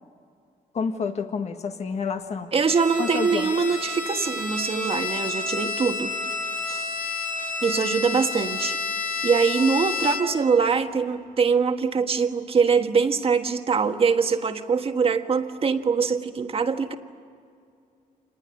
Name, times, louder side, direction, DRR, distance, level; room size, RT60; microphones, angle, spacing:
voice 1, 0.7-2.5 3.0-3.5, left 5 dB, 50° left, 5 dB, 1.7 m, -29 dB
voice 2, 2.5-6.1 6.7-6.9 7.6-8.8 9.2-17.0, right 5 dB, 40° right, 7 dB, 1.5 m, -23 dB
Bowed string instrument, 2.7-10.5, left 4 dB, 80° left, 5.3 m, -30 dB
27.5 x 20.0 x 9.9 m, 2.3 s
cardioid pair, 110°, 14 cm